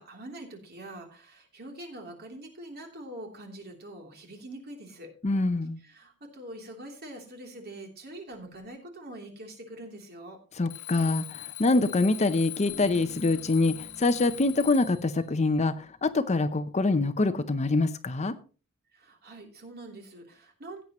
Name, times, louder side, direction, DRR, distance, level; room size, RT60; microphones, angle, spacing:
voice 1, 0.0-5.1 5.8-10.4 18.9-20.8, right 1 dB, 45° right, 3.2 m, -44 dB
voice 2, 5.2-5.8 10.6-18.3, left 2 dB, 30° left, 0.6 m, -25 dB
Alarm, 10.7-15.1, left 19 dB, 85° left, 1.4 m, -41 dB
Bass guitar, 12.7-16.5, left 1 dB, 85° right, 5.6 m, -51 dB
16.5 x 9.0 x 3.0 m
head